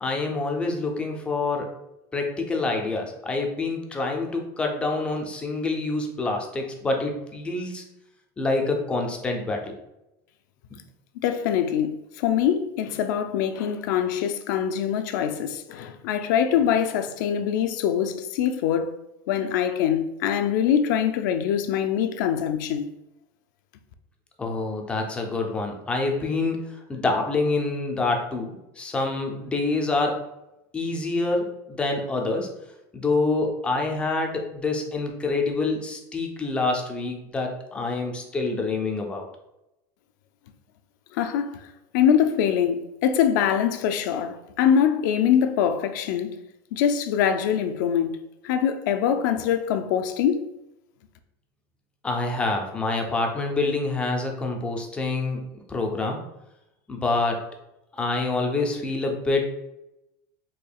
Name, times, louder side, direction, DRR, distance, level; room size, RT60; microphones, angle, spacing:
voice 1, 0.0-1.7 2.1-7.8 8.4-9.7 24.4-30.2 30.7-32.5 32.9-39.3 52.0-55.4 55.7-56.2 56.9-57.4 58.0-59.5, left 3 dB, 10° left, 0.4 m, -26 dB
voice 2, 11.2-11.9 12.2-18.9 19.3-22.9 41.2-41.6 41.9-46.3 46.7-48.1 48.4-50.4, left 8 dB, 80° left, 0.4 m, -23 dB
4.3 x 2.7 x 2.3 m
cardioid pair, 170°, 10 cm